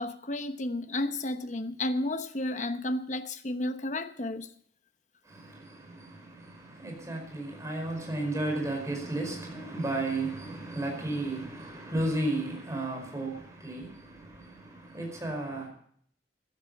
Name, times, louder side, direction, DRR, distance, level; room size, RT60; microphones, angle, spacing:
voice 1, 0.0-4.5, left 1 dB, 45° left, 1.0 m, -32 dB
voice 2, 5.2-15.7, right 2 dB, 20° right, 4.8 m, -34 dB
15.0 x 11.0 x 5.4 m
head